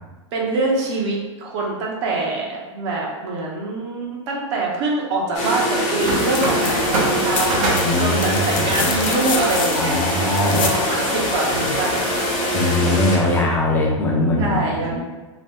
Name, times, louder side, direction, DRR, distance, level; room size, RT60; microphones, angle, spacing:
voice 1, 0.3-7.7 8.0-10.0 10.5-12.0 13.0-13.2 14.4-15.0, right 3 dB, 55° right, -2 dB, 0.7 m, -24 dB
sound 1, 5.3-13.4, left 1 dB, 40° left, 1.0 m, -23 dB
sound 2, 6.0-12.8, right 2 dB, 80° right, 0.9 m, -28 dB
sound 3, 6.1-6.7 7.0-10.8 12.5-12.6, left 5 dB, 75° left, 0.5 m, -28 dB
voice 2, 7.8-8.9 9.7-10.6 11.5-11.7 12.5-15.0, left 1 dB, 10° left, -2 dB, 0.6 m, -21 dB
2.9 x 2.1 x 3.4 m, 1.2 s
hypercardioid pair, 130°, 17 cm